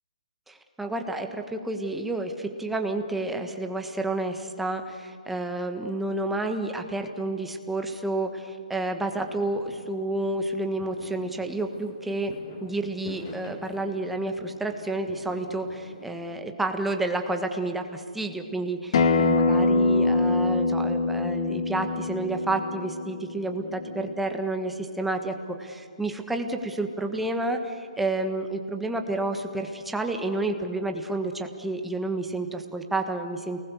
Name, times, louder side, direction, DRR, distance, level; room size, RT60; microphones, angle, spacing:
voice 1, 0.5-12.3 12.6-33.6, right 2 dB, 5° right, 5 dB, 1.5 m, -30 dB
Fireworks, 9.1-16.2, left 2 dB, 30° left, 4.1 m, -46 dB
Acoustic guitar, 18.9-24.1, left 3 dB, 50° left, 2.1 m, -24 dB
29.0 x 20.0 x 6.8 m, 2.3 s
hypercardioid pair, 150°, 4 cm